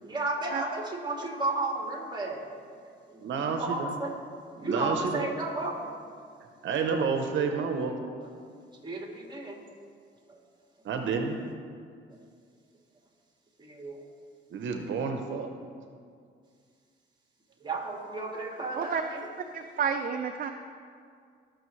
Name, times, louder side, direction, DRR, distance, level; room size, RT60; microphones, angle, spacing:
voice 1, 0.0-2.5 2.8-4.1 4.6-5.9 8.2-8.3 8.8-9.6 10.3-10.4 13.6-14.0 17.6-19.3, right 2 dB, 20° right, 0 dB, 2.0 m, -33 dB
voice 2, 3.2-3.9 4.6-5.3 6.6-7.9 10.8-11.4 14.5-15.5, right 5 dB, 70° right, 4 dB, 0.9 m, -29 dB
voice 3, 19.5-20.5, right 7 dB, 45° right, 5 dB, 0.6 m, -30 dB
18.5 x 6.4 x 3.2 m, 2.2 s
cardioid pair, 90°, 20 cm